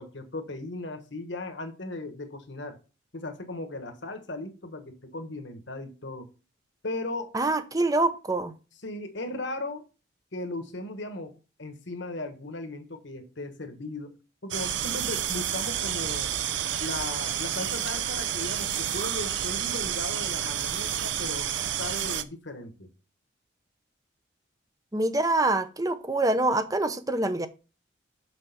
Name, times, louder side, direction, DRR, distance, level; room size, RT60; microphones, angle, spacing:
voice 1, 0.0-2.8 3.1-6.3 6.8-7.3 8.8-9.8 10.3-11.3 11.6-14.2 14.4-16.3 16.8-22.9, left 2 dB, 60° left, 1.3 m, -37 dB
voice 2, 7.3-8.5 24.9-27.5, right 2 dB, 15° right, 0.7 m, -25 dB
sound 1, 14.5-22.2, right 10 dB, 60° right, 0.6 m, -30 dB
6.3 x 6.0 x 5.9 m
head